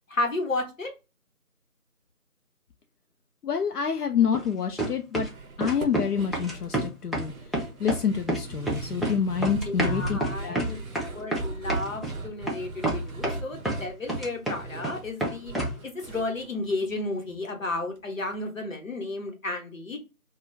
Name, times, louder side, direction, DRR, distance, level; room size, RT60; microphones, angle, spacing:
voice 1, 0.1-0.9 9.6-10.8 11.1-15.5 15.8-20.0, left 2 dB, 60° left, 2 dB, 0.9 m, -32 dB
voice 2, 3.4-5.3 5.6-10.6, left 7 dB, 85° left, 5 dB, 0.5 m, -27 dB
sound 1, 4.3-4.5 4.8-5.3 5.6-6.1 6.3-7.3 7.5-8.0 8.3-9.2 9.4-12.1 12.5-12.6 12.8-13.8 14.1-14.9 15.2-15.8, right 2 dB, ahead, 0.4 m, -28 dB
sound 2, 5.2-17.5 17.8-17.9 18.2-18.3, right 3 dB, 65° right, 0.6 m, -39 dB
2.4 x 2.2 x 3.1 m, 0.28 s
figure-of-eight pair, 170°, 45 cm